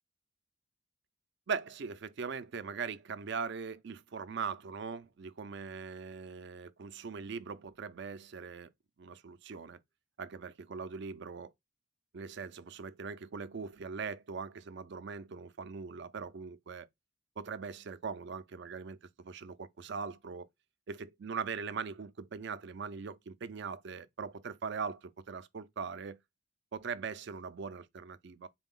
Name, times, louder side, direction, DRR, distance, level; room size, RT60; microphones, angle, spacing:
voice 1, 1.5-8.7 9.0-9.8 10.2-11.5 12.1-16.9 17.4-20.5 20.9-26.2 26.7-28.5, right 5 dB, 60° right, 0.4 m, -41 dB
4.0 x 2.2 x 3.6 m
head